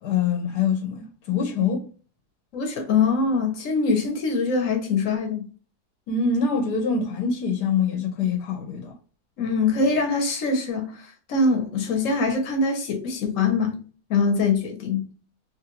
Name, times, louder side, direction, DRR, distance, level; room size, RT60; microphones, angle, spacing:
voice 1, 0.0-1.9 6.1-8.9, left 5 dB, 80° left, 1.3 m, -24 dB
voice 2, 2.5-5.4 9.4-11.0 11.3-13.8 14.1-15.1, left 4 dB, 55° left, 1.1 m, -23 dB
3.0 x 2.4 x 2.9 m
omnidirectional pair, 1.7 m